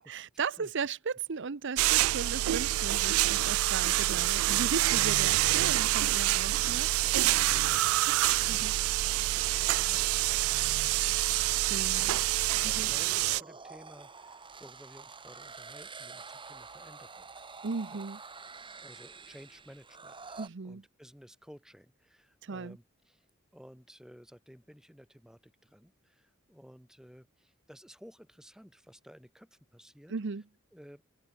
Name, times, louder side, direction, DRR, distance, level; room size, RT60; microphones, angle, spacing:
voice 1, 0.0-6.9 7.2-7.3 8.5-8.7 11.6-12.1 12.8-12.9 17.6-18.2 20.4-20.8 22.4-22.8 30.1-30.4, right 5 dB, 60° right, 0.7 m, -36 dB
sound 1, 1.8-13.4, right 16 dB, 90° right, 0.3 m, -27 dB
voice 2, 4.0-4.3 6.5-17.3 17.9-18.1 18.8-23.2 23.5-30.1 30.7-31.0, equal, 5° right, 3.2 m, -55 dB
sound 2, 12.7-20.5, right 4 dB, 25° right, 2.7 m, -48 dB
head